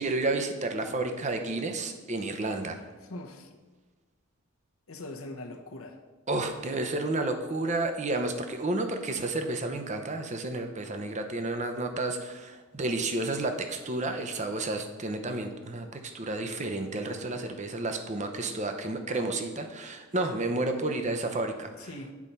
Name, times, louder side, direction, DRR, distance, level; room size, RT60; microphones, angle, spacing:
voice 1, 0.0-2.8 6.3-21.9, right 2 dB, 30° right, 6 dB, 0.7 m, -31 dB
voice 2, 3.0-3.6 4.9-6.0 21.8-22.1, left 2 dB, 70° left, 3 dB, 0.9 m, -41 dB
8.5 x 4.4 x 5.4 m, 1.3 s
head